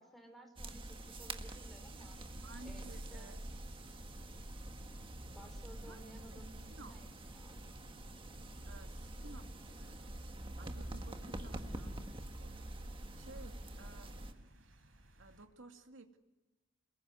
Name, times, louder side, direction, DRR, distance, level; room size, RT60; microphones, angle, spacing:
voice 1, 0.0-2.3 2.6-3.3 5.2-7.6 11.2-12.0, right 1 dB, ahead, 4 dB, 4.5 m, -56 dB
sound 1, 0.6-14.3, right 1 dB, 25° right, 1.6 m, -46 dB
sound 2, 1.9-15.5, right 1 dB, 85° right, 5.0 m, -62 dB
voice 2, 2.4-3.4 5.8-7.0 8.7-10.1 10.6-12.0 12.4-12.5 13.2-14.7 15.2-16.2, right 2 dB, 70° right, 5 dB, 2.5 m, -56 dB
28.0 x 21.5 x 9.7 m, 1.1 s
head